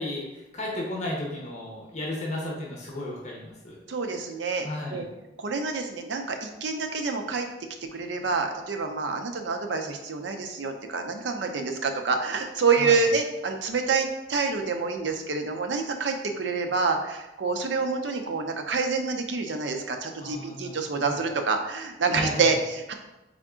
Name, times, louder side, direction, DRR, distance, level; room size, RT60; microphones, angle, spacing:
voice 1, 0.0-3.8 4.6-5.0 12.8-13.1 20.2-21.2 22.1-22.5, left 1 dB, 40° left, -2 dB, 0.8 m, -34 dB
voice 2, 3.9-5.0 5.4-7.5 7.9-22.9, right 4 dB, 80° right, 5 dB, 0.5 m, -27 dB
3.6 x 3.6 x 3.7 m, 0.99 s
head